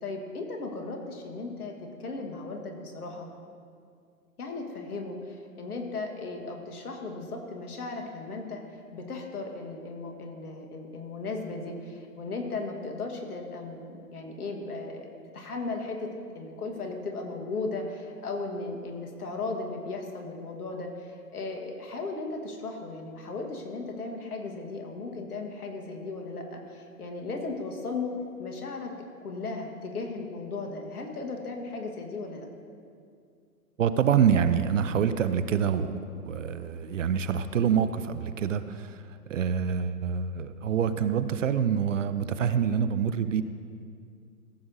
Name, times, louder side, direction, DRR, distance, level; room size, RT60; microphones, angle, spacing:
voice 1, 0.0-3.3 4.4-8.6 8.9-15.1 15.3-28.1 28.4-28.9 29.2-32.5, left 3 dB, 70° left, 2 dB, 1.6 m, -36 dB
voice 2, 33.8-39.0 39.3-43.4, right 7 dB, 55° right, 12 dB, 0.5 m, -26 dB
15.0 x 7.6 x 2.7 m, 2.3 s
figure-of-eight pair, 130°, 47 cm